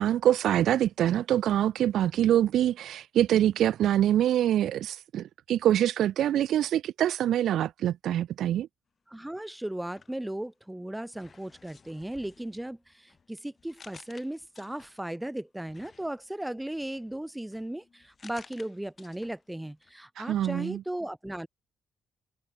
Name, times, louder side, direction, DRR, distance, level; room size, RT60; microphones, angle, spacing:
voice 1, 0.0-8.7 20.2-20.8, right 11 dB, 75° right, 0.6 m, -25 dB
voice 2, 9.1-21.5, right 1 dB, 5° right, 1.0 m, -36 dB
sound 1, 9.8-10.7 11.1-15.2 15.7-19.5 19.8-19.9, left 5 dB, 40° left, 5.3 m, -56 dB
cardioid pair, 90°, 0 cm